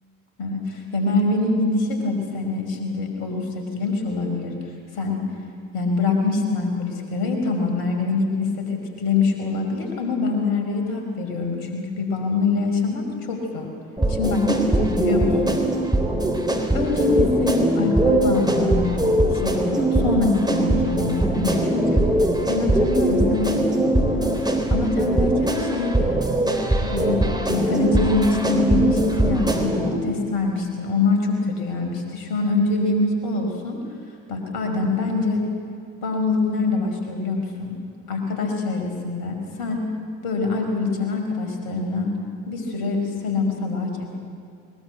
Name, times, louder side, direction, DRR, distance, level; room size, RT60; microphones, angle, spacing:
voice 1, 0.4-4.5 4.9-5.2 5.7-13.7 14.1-15.6 16.7-22.1 22.5-24.0 24.7-26.2 26.8-33.8 34.3-35.4 36.0-37.8 38.1-39.8 40.2-42.1 42.5-44.1, left 3 dB, 60° left, 3 dB, 5.3 m, -24 dB
sound 1, 14.0-30.0, right 1 dB, 10° right, 3.8 m, -21 dB
22.0 x 21.0 x 8.1 m, 2.5 s
figure-of-eight pair, 55°, 41 cm